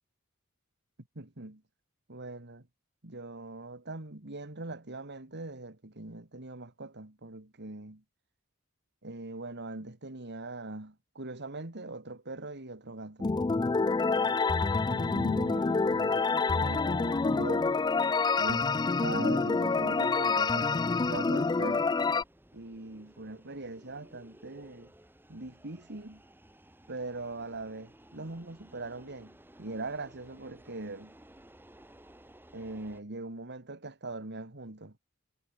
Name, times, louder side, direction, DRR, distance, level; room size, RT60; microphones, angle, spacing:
voice 1, 1.2-1.6 2.1-2.7 3.0-8.0 9.0-13.3 14.9-17.8 18.4-18.7 19.0-20.8 21.1-21.9 22.5-24.9 25.3-26.2 26.9-31.1 32.5-35.0, right 2 dB, 50° right, 2.3 m, -41 dB
sound 1, 13.2-22.2, left 4 dB, 20° left, 0.3 m, -27 dB
sound 2, 18.3-33.0, right 1 dB, 10° right, 3.1 m, -57 dB
head